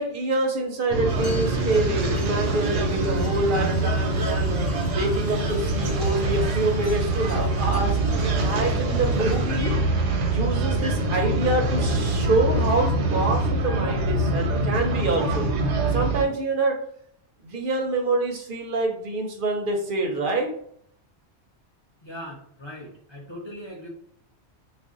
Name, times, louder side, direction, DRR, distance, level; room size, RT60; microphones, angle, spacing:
voice 1, 0.0-4.5 4.9-8.0 8.4-9.7 10.3-15.5 15.9-16.8 17.4-20.5, right 2 dB, 60° right, 3 dB, 0.6 m, -26 dB
sound 1, 0.9-16.2, right 2 dB, 90° right, 0.9 m, -24 dB
sound 2, 1.1-9.7, equal, 5° left, 0.8 m, -44 dB
voice 2, 22.0-23.9, equal, 40° left, -4 dB, 0.4 m, -39 dB
2.5 x 2.0 x 3.6 m, 0.66 s
omnidirectional pair, 1.2 m